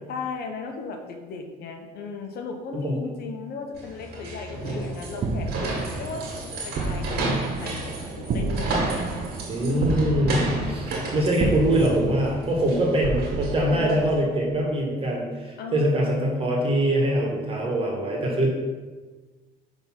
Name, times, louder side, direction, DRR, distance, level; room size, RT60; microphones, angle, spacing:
voice 1, 0.1-8.7 9.6-10.8 13.7-14.2 15.6-16.4, left 4 dB, 70° left, 4 dB, 0.9 m, -36 dB
sound 1, 3.7-14.2, right 2 dB, 70° right, 1.9 m, -32 dB
sound 2, 5.2-14.7, right 3 dB, 50° right, 0.6 m, -31 dB
voice 2, 9.5-18.5, right 1 dB, 35° right, -1 dB, 1.8 m, -23 dB
6.0 x 3.6 x 5.8 m, 1.3 s
cardioid pair, 110°, 17 cm